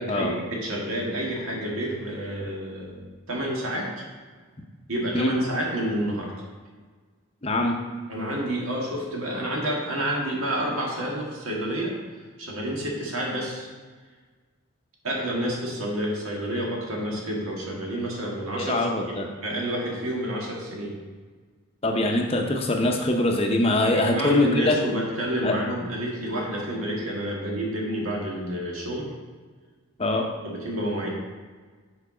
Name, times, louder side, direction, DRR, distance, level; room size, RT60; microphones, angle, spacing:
voice 1, 0.0-4.0 4.9-6.3 8.1-12.0 12.4-13.7 15.0-21.0 23.8-29.1 30.4-31.1, right 1 dB, 80° right, -2 dB, 1.8 m, -29 dB
voice 2, 7.4-7.7 18.6-19.3 21.8-24.8 25.4-25.5 30.0-30.2, left 2 dB, 25° left, 2 dB, 0.7 m, -23 dB
6.9 x 4.7 x 4.9 m, 1.5 s
head